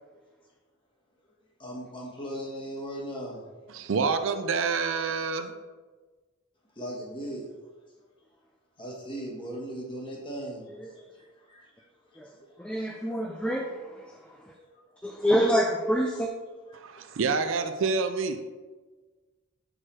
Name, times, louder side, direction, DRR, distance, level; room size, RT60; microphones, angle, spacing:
voice 1, 1.6-3.4 6.7-7.5 8.8-10.7 11.1-11.9 12.1-12.9 14.5-14.6 16.9-17.1, equal, 25° left, -2 dB, 1.3 m, -38 dB
voice 2, 3.7-5.5 16.7-18.4, right 4 dB, 60° right, 8 dB, 0.4 m, -27 dB
voice 3, 12.6-13.8 15.0-16.3, equal, 5° left, 1 dB, 0.4 m, -26 dB
6.4 x 4.6 x 4.4 m, 1.3 s
head